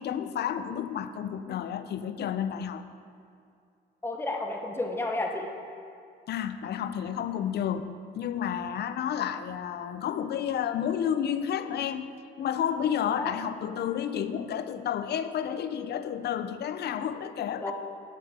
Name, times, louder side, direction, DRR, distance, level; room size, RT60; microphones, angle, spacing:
voice 1, 0.0-2.9 6.3-12.1 12.4-17.7, left 9 dB, 55° left, 12 dB, 0.5 m, -31 dB
voice 2, 4.0-5.5 13.2-13.3 17.6-17.7, left 2 dB, 10° left, 2 dB, 0.9 m, -31 dB
7.6 x 7.0 x 4.3 m, 2.3 s
cardioid pair, 90°, 20 cm